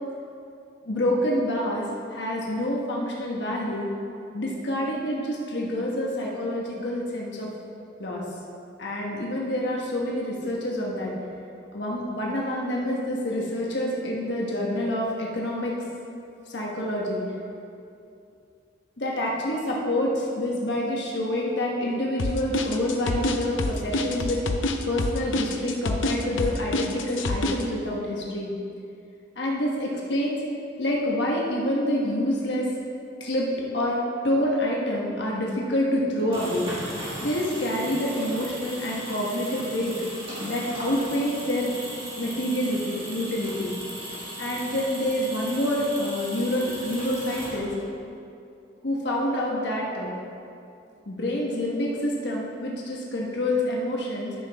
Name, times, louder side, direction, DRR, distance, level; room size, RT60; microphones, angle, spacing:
voice 1, 0.8-3.9 4.3-7.5 8.0-8.2 8.8-11.1 11.7-15.7 16.5-17.2 19.0-24.4 24.9-28.5 29.3-30.4 30.8-32.7 33.2-36.7 37.2-39.9 40.4-41.7 42.1-43.7 44.4-47.7 48.8-50.1 51.0-54.3, left 1 dB, 60° left, -3 dB, 1.3 m, -27 dB
sound 1, 22.2-27.6, left 2 dB, 85° left, 0.6 m, -26 dB
sound 2, 36.1-47.9, right 1 dB, 30° right, 2.0 m, -37 dB
12.0 x 6.1 x 3.5 m, 2.5 s
head